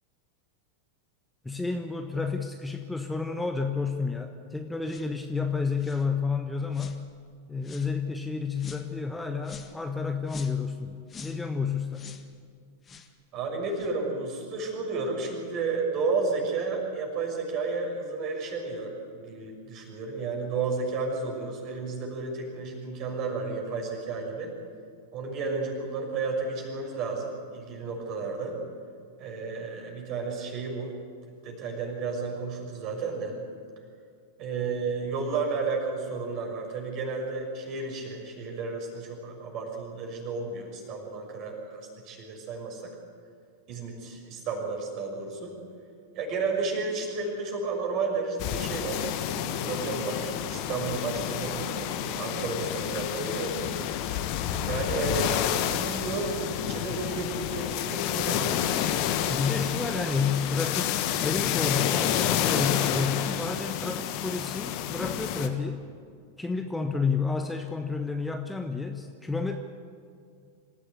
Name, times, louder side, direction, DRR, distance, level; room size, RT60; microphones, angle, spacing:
voice 1, 1.4-7.0 7.5-12.1 59.3-65.8 66.4-69.6, left 4 dB, 5° left, 5 dB, 1.2 m, -30 dB
Woosh Miss Close (denoised), 4.8-5.1 5.8-6.1 6.7-7.0 7.6-7.9 8.6-8.9 9.4-9.8 10.3-10.7 11.1-11.4 11.9-12.3 12.8-13.1 13.7-13.9, left 6 dB, 20° left, 1.7 m, -46 dB
voice 2, 13.3-24.5 25.1-28.6 29.2-30.9 31.4-33.4 34.4-42.9 43.7-45.5 46.1-53.7 54.6-58.6, right 4 dB, 40° right, 1 dB, 6.3 m, -32 dB
sound 1, 48.4-65.5, left 10 dB, 45° left, 1.6 m, -29 dB
26.0 x 15.0 x 8.3 m, 2.2 s
figure-of-eight pair, 90°, 0 cm